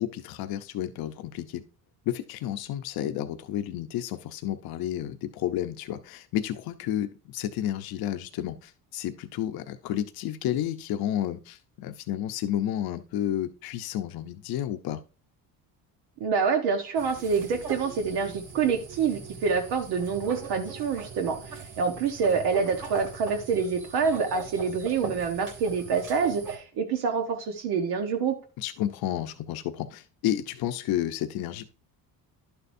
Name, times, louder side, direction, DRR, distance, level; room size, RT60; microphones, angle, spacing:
voice 1, 0.0-1.6 2.1-15.0 28.6-31.7, left 11 dB, 70° left, 0.8 m, -31 dB
voice 2, 16.2-28.4, right 5 dB, 80° right, 1.2 m, -27 dB
sound 1, 16.9-26.6, right 4 dB, 55° right, 2.7 m, -40 dB
11.0 x 6.9 x 2.7 m
cardioid pair, 105°, 38 cm